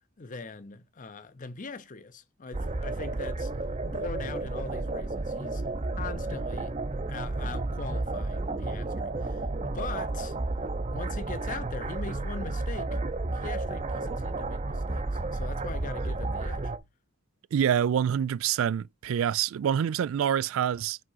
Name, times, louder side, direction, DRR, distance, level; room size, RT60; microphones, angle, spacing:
voice 1, 0.2-3.5 3.8-5.6 6.0-6.7 7.1-10.4 10.9-13.0 13.3-16.7, left 4 dB, 40° left, 0.6 m, -41 dB
sound 1, 2.5-16.8, right 2 dB, 30° right, 0.7 m, -32 dB
voice 2, 17.5-21.0, right 9 dB, 70° right, 0.3 m, -26 dB
5.4 x 3.7 x 5.5 m
head